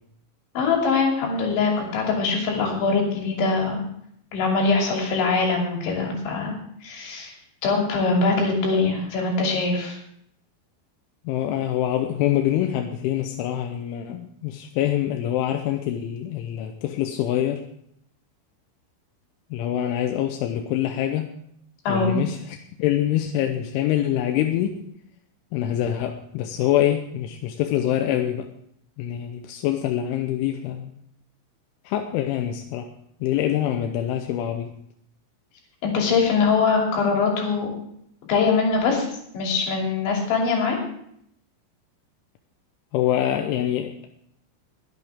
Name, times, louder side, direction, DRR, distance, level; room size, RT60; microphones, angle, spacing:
voice 1, 0.5-3.8 4.3-6.5 6.8-7.3 7.6-10.0 21.9-22.2 35.8-37.7 38.3-39.1 39.3-40.8, left 4 dB, 65° left, 0 dB, 5.0 m, -22 dB
voice 2, 11.3-17.6 19.5-21.3 21.9-24.7 25.5-28.5 29.0-30.9 31.9-32.9 33.2-34.7 42.9-44.1, left 11 dB, 80° left, 4 dB, 3.0 m, -25 dB
22.0 x 8.3 x 3.6 m, 0.70 s
omnidirectional pair, 6.0 m